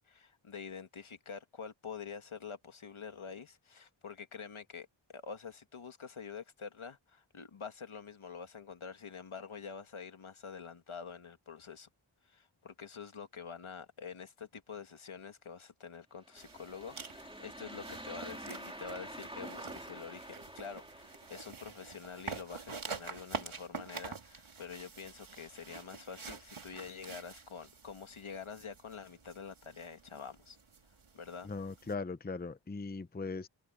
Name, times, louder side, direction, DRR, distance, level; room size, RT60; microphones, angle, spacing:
voice 1, 0.0-11.9 12.2-30.6 31.1-31.5, left 6 dB, 75° left, 1.9 m, -47 dB
sound 1, 16.2-21.7, right 1 dB, 10° right, 2.4 m, -47 dB
sound 2, 16.4-31.9, right 5 dB, 75° right, 2.7 m, -47 dB
voice 2, 31.4-33.5, left 4 dB, 20° left, 0.7 m, -39 dB
wide cardioid pair, 85°, 50 cm